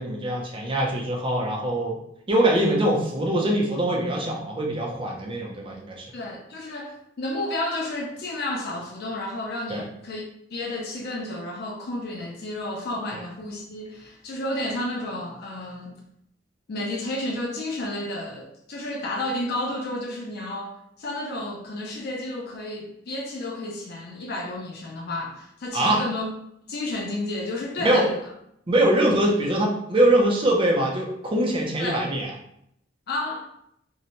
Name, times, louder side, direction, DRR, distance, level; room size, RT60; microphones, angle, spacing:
voice 1, 0.0-2.0 2.3-6.1 9.7-9.8 25.7-26.0 27.8-28.1 28.7-32.3, right 1 dB, 30° right, -1 dB, 0.5 m, -23 dB
voice 2, 6.1-10.2 10.5-16.0 16.7-26.3 26.7-28.2 31.8-32.0 33.1-33.5, left 1 dB, 55° left, 0 dB, 0.4 m, -31 dB
2.6 x 2.1 x 2.9 m, 0.75 s
head